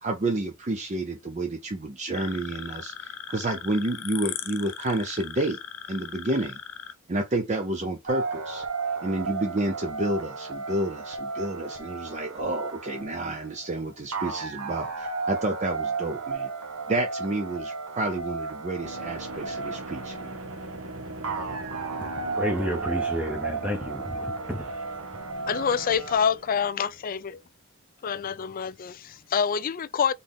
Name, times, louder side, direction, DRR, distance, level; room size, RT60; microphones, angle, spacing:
voice 1, 0.0-5.6 5.9-6.6 7.1-8.6 9.0-16.5 16.9-20.4, right 2 dB, 35° right, 0.6 m, -30 dB
sound 1, 2.1-6.9, left 9 dB, 75° left, 0.7 m, -38 dB
sound 2, 8.1-26.2, right 4 dB, 85° right, 1.0 m, -34 dB
sound 3, 18.8-27.4, right 2 dB, 65° right, 1.2 m, -41 dB
voice 2, 22.3-24.7, equal, 5° right, 0.8 m, -30 dB
voice 3, 25.5-27.4 28.0-30.1, left 7 dB, 40° left, 0.3 m, -26 dB
4.0 x 3.7 x 3.5 m
head